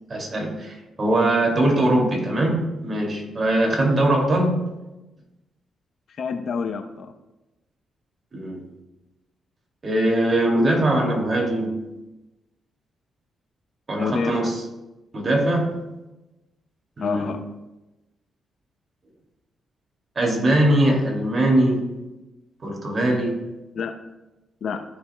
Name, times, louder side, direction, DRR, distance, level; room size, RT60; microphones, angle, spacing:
voice 1, 0.1-4.7 8.3-8.6 9.8-11.8 13.9-14.6 15.1-15.8 17.0-17.3 20.2-21.9 22.6-23.4, right 1 dB, 40° right, 0 dB, 2.4 m, -21 dB
voice 2, 6.1-7.1 14.0-14.5 17.0-17.4 23.7-24.0 24.6-24.8, left 5 dB, 65° left, 7 dB, 0.7 m, -28 dB
14.5 x 5.5 x 2.2 m, 1.0 s
supercardioid pair, 65°, 0 cm